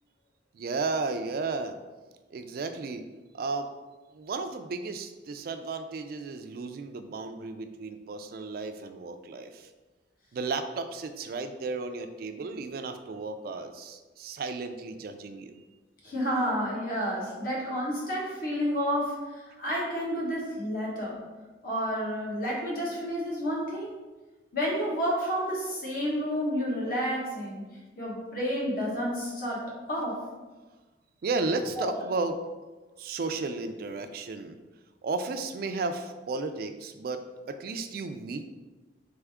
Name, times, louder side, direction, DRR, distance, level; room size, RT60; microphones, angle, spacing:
voice 1, 0.5-1.8 2.3-3.1 3.3-3.7 4.1-9.7 10.3-15.6 31.2-32.4 33.0-34.6 35.0-38.5, right 3 dB, 55° right, 9 dB, 0.3 m, -34 dB
voice 2, 16.0-21.1 21.6-23.9 24.5-27.6 28.0-29.6 29.9-30.2 31.8-31.9, equal, 50° left, -4 dB, 1.3 m, -30 dB
3.5 x 3.5 x 3.4 m, 1.2 s
head